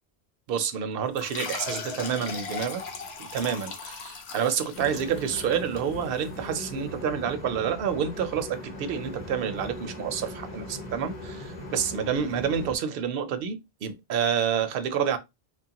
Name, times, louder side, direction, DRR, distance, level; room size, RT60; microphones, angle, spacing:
voice 1, 0.5-2.8 3.2-15.2, right 7 dB, 65° right, 0.7 m, -28 dB
sound 1, 1.2-6.3, left 5 dB, 80° left, 0.9 m, -38 dB
sound 2, 4.7-12.8, left 1 dB, 45° left, 0.8 m, -39 dB
3.1 x 2.3 x 2.8 m
omnidirectional pair, 1.1 m